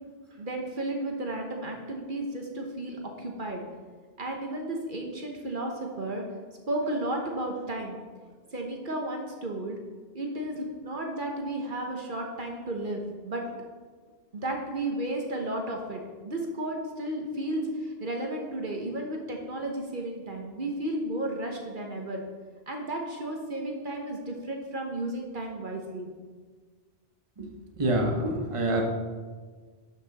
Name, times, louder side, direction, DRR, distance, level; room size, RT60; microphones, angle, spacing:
voice 1, 0.4-3.6 4.2-6.2 6.7-8.0 8.5-9.8 10.1-13.4 14.3-22.2 22.7-26.1, right 1 dB, 55° right, 1 dB, 1.2 m, -33 dB
voice 2, 27.8-28.8, right 1 dB, 35° right, 1 dB, 1.1 m, -26 dB
11.5 x 6.0 x 4.1 m, 1.5 s
omnidirectional pair, 1.0 m